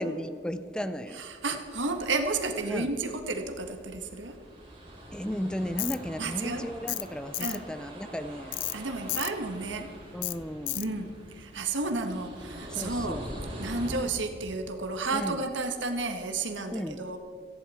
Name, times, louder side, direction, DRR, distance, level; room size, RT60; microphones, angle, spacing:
voice 1, 0.0-1.2 2.7-2.9 5.1-8.6 10.1-11.0 12.7-13.2 15.1-15.5 16.7-17.0, equal, 5° left, 12 dB, 0.5 m, -35 dB
voice 2, 1.1-4.4 6.2-6.7 7.4-7.6 8.7-9.9 10.7-13.2 13.6-17.2, right 3 dB, 90° right, 6 dB, 1.5 m, -32 dB
sound 1, 1.6-14.0, equal, 30° right, 3.4 m, -44 dB
Tools, 5.8-6.0 6.9-7.1 7.3-7.6 8.5-8.8 9.1-9.3 10.2-10.4 10.7-10.9, left 19 dB, 80° left, 0.4 m, -32 dB
17.5 x 15.0 x 4.3 m, 2.4 s
head